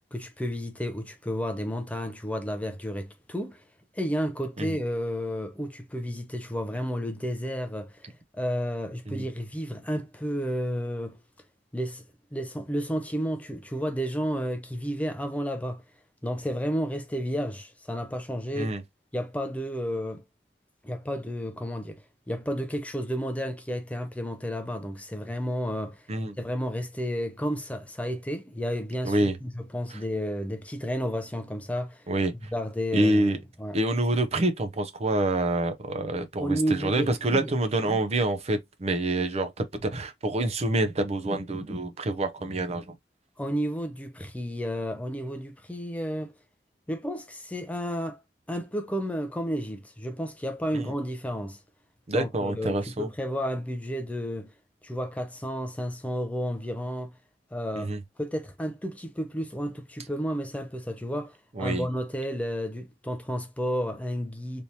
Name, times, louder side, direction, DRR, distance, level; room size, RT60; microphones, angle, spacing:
voice 1, 0.0-3.6 3.9-11.2 11.7-12.0 12.3-15.8 16.2-18.7 19.1-20.2 20.8-26.1 26.4-32.1 32.5-33.8 36.4-37.5 37.8-38.0 43.4-46.3 46.9-48.2 48.5-51.6 52.1-54.5 54.8-57.1 57.5-57.9 58.2-64.6, equal, 10° left, 0.4 m, -32 dB
voice 2, 29.0-29.4 32.1-32.3 32.9-33.4 33.7-43.0 50.7-50.9 52.1-53.1 57.8-58.0 61.6-61.9, right 1 dB, 40° right, 0.6 m, -27 dB
3.3 x 2.9 x 2.7 m
head